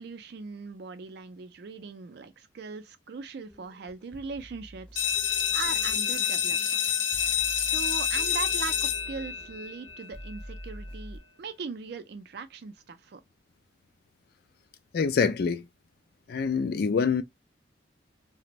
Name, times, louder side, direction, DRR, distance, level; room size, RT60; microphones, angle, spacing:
voice 1, 0.0-5.1 5.5-6.6 7.6-13.2, right 5 dB, 55° right, 0.4 m, -39 dB
sound 1, 3.5-11.2, equal, 5° left, 0.6 m, -46 dB
sound 2, 5.0-10.4, left 8 dB, 75° left, 0.7 m, -28 dB
voice 2, 14.9-15.7 16.3-17.2, left 5 dB, 50° left, 0.3 m, -25 dB
2.5 x 2.1 x 2.9 m
head